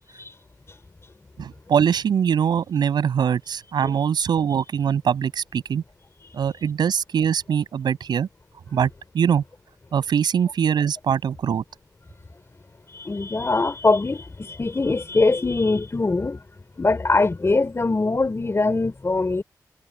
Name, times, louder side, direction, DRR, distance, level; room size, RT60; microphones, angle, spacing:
voice 1, 1.4-5.8 6.3-8.3 8.7-8.9 9.1-9.4 9.9-11.6, right 8 dB, 85° right, 7.2 m, -22 dB
voice 2, 12.9-16.4 16.8-19.4, left 3 dB, 35° left, 5.4 m, -22 dB
cardioid pair, 55°, 7 cm